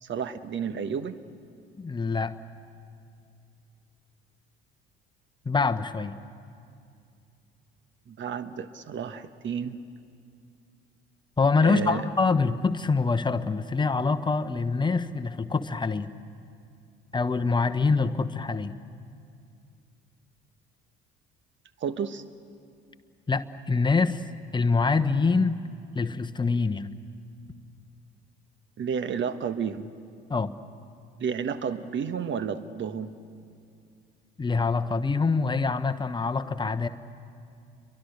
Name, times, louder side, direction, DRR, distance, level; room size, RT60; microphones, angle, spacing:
voice 1, 0.0-1.2 8.1-9.8 11.6-12.1 21.8-22.2 28.8-29.9 31.2-33.1, right 7 dB, 40° right, 12 dB, 1.3 m, -31 dB
voice 2, 1.8-2.3 5.4-6.1 11.4-16.1 17.1-18.7 23.3-24.2 24.5-25.6 25.9-26.9 30.3-30.5 34.4-36.9, left 4 dB, 15° left, 9 dB, 1.1 m, -25 dB
29.0 x 23.0 x 6.7 m, 2.4 s
figure-of-eight pair, 55°, 29 cm